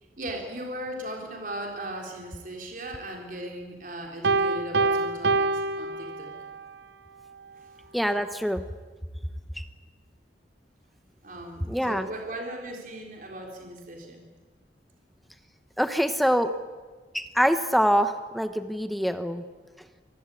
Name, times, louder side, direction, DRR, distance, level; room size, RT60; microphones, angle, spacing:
voice 1, 0.2-6.3 7.6-7.7 11.2-14.2, right 1 dB, 50° right, 1 dB, 3.9 m, -38 dB
Piano, 4.2-6.6, right 3 dB, 75° right, 1.0 m, -25 dB
voice 2, 7.9-8.6 9.6-9.7 11.7-12.1 15.8-16.5 17.1-19.4, equal, ahead, 9 dB, 0.9 m, -25 dB
26.0 x 20.0 x 8.6 m, 1.4 s
head